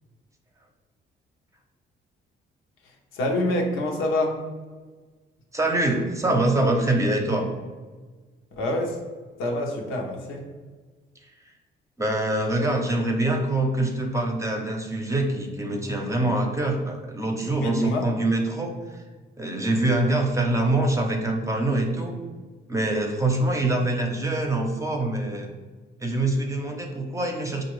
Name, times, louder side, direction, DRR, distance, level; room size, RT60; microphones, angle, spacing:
voice 1, 3.1-4.4 8.6-9.0 9.4-10.4 17.6-18.1, left 1 dB, 85° left, 1 dB, 0.9 m, -26 dB
voice 2, 5.5-7.5 11.5-11.6 12.0-19.0 19.4-22.1 22.7-25.5 26.0-27.6, right 2 dB, 15° right, 2 dB, 0.7 m, -24 dB
5.6 x 2.5 x 3.1 m, 1.4 s
cardioid pair, 90°, 20 cm